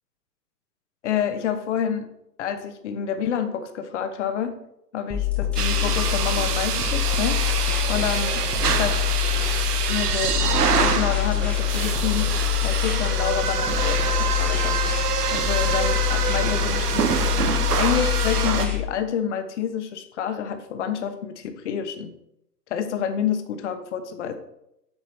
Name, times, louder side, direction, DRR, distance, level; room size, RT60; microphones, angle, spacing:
voice 1, 1.0-2.1 2.4-4.6 4.9-7.4 7.9-9.0 9.9-12.3 12.6-14.8 15.3-17.2 17.8-22.1 22.7-24.3, left 8 dB, 45° left, 9 dB, 1.1 m, -28 dB
sound 1, 5.1-18.8, left 14 dB, 5° left, 0.6 m, -25 dB
sound 2, 5.6-18.7, right 7 dB, 65° right, 1.0 m, -25 dB
8.1 x 6.0 x 4.1 m, 0.81 s
figure-of-eight pair, 120°, 50 cm